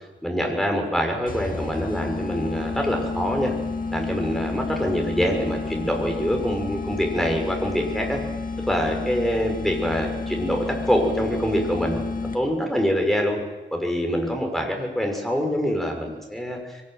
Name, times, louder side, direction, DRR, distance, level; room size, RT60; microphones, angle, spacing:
voice 1, 0.2-3.5 3.9-8.2 8.7-12.1 12.3-13.4 13.7-16.8, equal, ahead, 2 dB, 6.3 m, -25 dB
sound 1, 1.3-12.7, left 3 dB, 45° left, 2.2 m, -31 dB
23.0 x 20.0 x 9.2 m, 1.2 s
wide cardioid pair, 110°, 20 cm